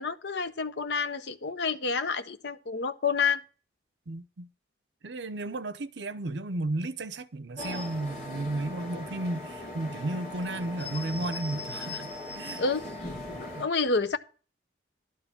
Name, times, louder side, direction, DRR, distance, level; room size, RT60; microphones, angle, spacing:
voice 1, 0.0-3.4 12.6-12.9 13.6-14.2, left 5 dB, 70° left, 0.7 m, -28 dB
voice 2, 4.1-4.5 5.0-12.6 13.5-13.7, right 2 dB, 75° right, 0.7 m, -34 dB
sound 1, 7.6-13.6, left 2 dB, 40° left, 3.6 m, -39 dB
11.5 x 4.7 x 7.1 m
head